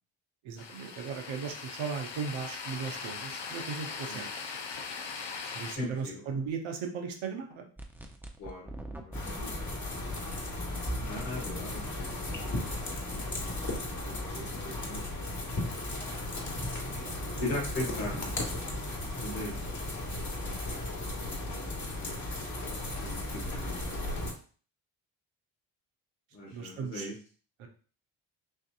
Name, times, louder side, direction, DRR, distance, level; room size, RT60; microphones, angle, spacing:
voice 1, 0.4-4.3 5.5-7.6 10.1-10.4 16.9-17.4 19.2-19.3 20.4-20.6 26.5-27.1 27.6-27.7, right 5 dB, 70° right, 4 dB, 1.0 m, -37 dB
sound 1, 0.6-5.8, left 5 dB, 55° left, 0.9 m, -40 dB
voice 2, 5.7-6.2 8.4-9.0 9.2-9.5 11.0-12.4 12.9-13.0 13.8-15.2 17.4-18.3 19.0-19.6 19.9-22.3 23.0-24.0 26.3-27.1, left 1 dB, 80° left, -3 dB, 1.9 m, -40 dB
sound 2, 7.8-9.4, right 1 dB, 5° right, 0.8 m, -43 dB
sound 3, 9.1-24.3, left 1 dB, 35° left, 1.7 m, -35 dB
6.1 x 2.7 x 2.5 m, 0.41 s
hypercardioid pair, 50°, 49 cm